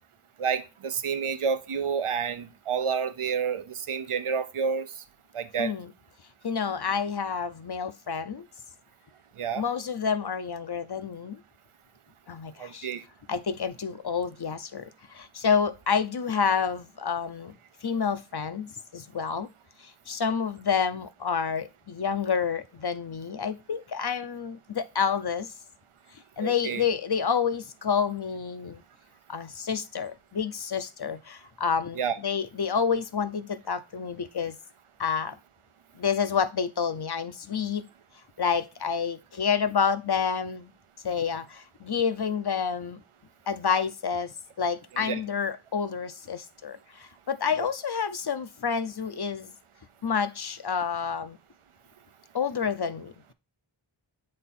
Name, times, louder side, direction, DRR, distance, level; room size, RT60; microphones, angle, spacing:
voice 1, 0.4-4.9 5.3-5.7 9.4-9.6 12.6-13.0 26.4-26.8 32.0-32.1 45.0-45.2, right 6 dB, 85° right, 0.7 m, -29 dB
voice 2, 5.6-5.9 6.4-8.5 9.5-11.4 12.3-12.9 13.3-17.5 17.8-19.5 19.8-25.5 26.4-28.8 29.3-34.6 35.0-35.4 36.0-37.9 38.4-40.7 41.0-43.0 43.5-49.5 50.0-51.4 52.3-53.1, left 6 dB, 50° left, 0.6 m, -29 dB
7.5 x 3.6 x 4.2 m
wide cardioid pair, 45°, 49 cm